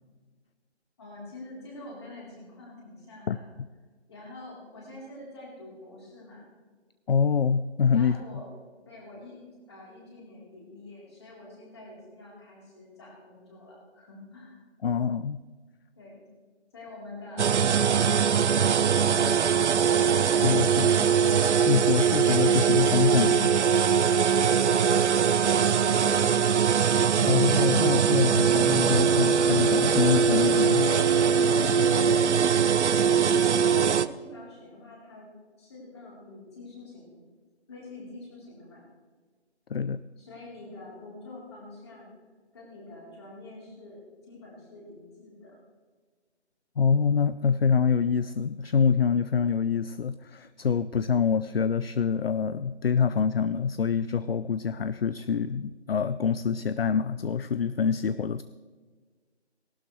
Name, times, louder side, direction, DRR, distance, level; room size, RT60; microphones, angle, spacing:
voice 1, 1.0-3.4 4.1-6.5 7.9-8.5 8.9-9.4 9.7-14.6 15.9-16.2 16.7-20.1 24.3-26.4 32.1-33.2 33.5-35.3 35.6-37.2 37.7-38.9 40.2-42.1 42.5-45.6, left 2 dB, 25° left, -4 dB, 3.7 m, -46 dB
voice 2, 7.1-8.2 14.8-15.4 20.3-21.1 21.7-23.6 27.2-30.9 39.7-40.0 46.8-58.4, left 6 dB, 60° left, 14 dB, 0.4 m, -25 dB
sound 1, 17.4-34.1, right 7 dB, 80° right, 0.6 m, -22 dB
18.5 x 12.0 x 3.2 m, 1.5 s
hypercardioid pair, 175°, 34 cm